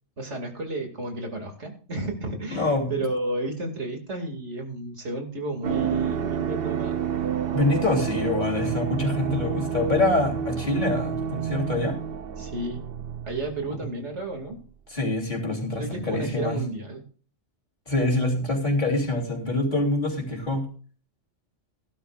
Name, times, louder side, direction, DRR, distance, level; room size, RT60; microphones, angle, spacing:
voice 1, 0.2-7.0 12.4-12.8 13.2-14.6 15.8-17.0, right 2 dB, 85° right, 3 dB, 2.8 m, -32 dB
voice 2, 2.5-3.0 7.5-12.0 13.7-13.8 14.9-16.6 17.9-20.7, left 2 dB, 40° left, -1 dB, 3.5 m, -25 dB
sound 1, 5.6-14.2 14.4-14.5, right 8 dB, 60° right, 1.0 m, -29 dB
17.5 x 11.5 x 2.5 m, 0.41 s
omnidirectional pair, 1.2 m